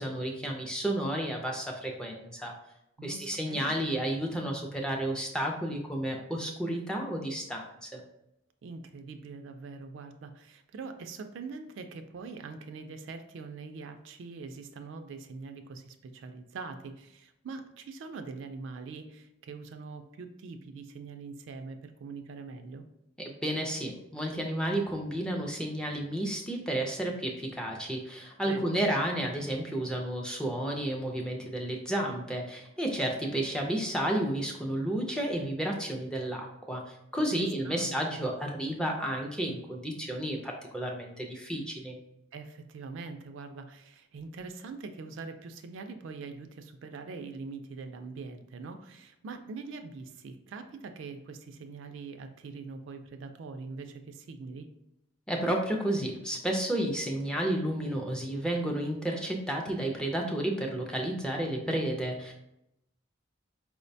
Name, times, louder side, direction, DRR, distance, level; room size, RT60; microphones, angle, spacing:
voice 1, 0.0-2.5 3.0-8.0 23.2-36.8 37.1-42.0 55.3-62.3, right 1 dB, 5° left, 0 dB, 0.4 m, -32 dB
voice 2, 3.0-4.0 8.6-22.8 28.4-28.8 37.3-38.2 42.3-54.7, right 4 dB, 65° right, 7 dB, 0.3 m, -43 dB
4.5 x 2.1 x 2.6 m, 0.84 s
head